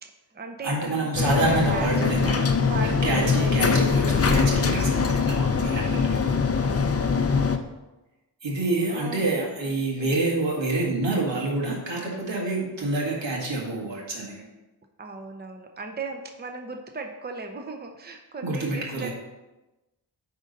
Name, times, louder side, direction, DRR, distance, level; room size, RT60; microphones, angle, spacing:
voice 1, 0.0-3.8 4.7-6.2 8.9-9.4 10.0-10.2 15.0-19.1, right 3 dB, 25° right, 4 dB, 0.7 m, -37 dB
voice 2, 0.6-2.5 2.8-6.2 8.4-14.4 18.4-19.1, right 2 dB, 90° right, -2 dB, 2.0 m, -27 dB
sound 1, 1.1-7.6, left 5 dB, 35° left, 0.6 m, -22 dB
9.4 x 3.8 x 5.3 m, 1.1 s
wide cardioid pair, 115°, 43 cm